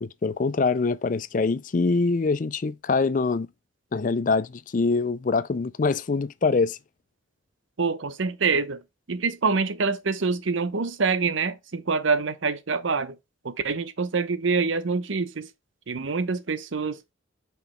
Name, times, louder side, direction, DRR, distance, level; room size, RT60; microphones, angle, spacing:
voice 1, 0.0-3.5 3.9-6.8, left 4 dB, 40° left, 0.4 m, -24 dB
voice 2, 7.8-8.8 9.1-13.2 13.4-15.5 15.9-17.1, right 4 dB, 75° right, 0.7 m, -26 dB
5.5 x 3.9 x 4.3 m
head